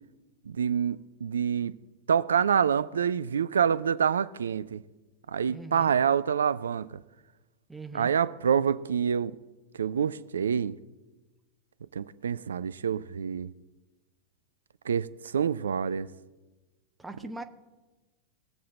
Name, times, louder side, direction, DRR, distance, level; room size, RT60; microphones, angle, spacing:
voice 1, 0.5-1.7 2.1-4.8 5.3-7.0 7.9-9.4 9.8-10.8 11.9-13.5 14.9-16.1, right 7 dB, 70° right, 0.4 m, -27 dB
voice 2, 5.5-5.9 7.7-8.1 17.0-17.4, right 2 dB, 10° right, 0.9 m, -41 dB
20.5 x 7.5 x 4.1 m
figure-of-eight pair, 90°, 0 cm